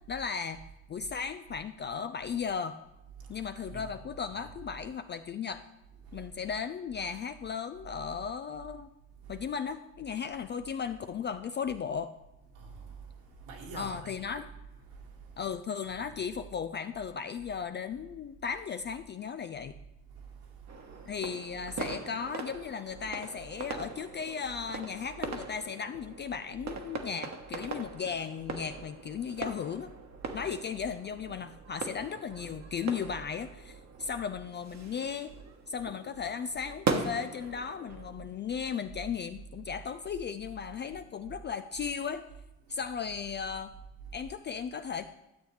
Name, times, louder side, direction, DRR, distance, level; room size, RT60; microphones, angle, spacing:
voice 1, 0.1-0.6 0.9-2.8 3.3-5.6 6.1-8.9 9.3-12.1 13.7-14.5 15.4-19.7 21.1-29.9 30.3-35.3 35.7-42.2 42.7-43.7 44.1-45.1, left 6 dB, 25° left, 0.3 m, -36 dB
voice 2, 3.2-3.9 4.3-4.4 6.0-6.3 9.2-9.4 12.5-14.3 14.8-15.4 15.9-16.1 20.1-21.2 30.2-30.5 33.9-34.1 42.6-42.8 44.0-44.3, right 4 dB, 70° right, 2.3 m, -48 dB
sound 1, 20.7-38.1, right 4 dB, 35° right, 1.2 m, -40 dB
12.5 x 7.7 x 3.2 m
hypercardioid pair, 60°, 48 cm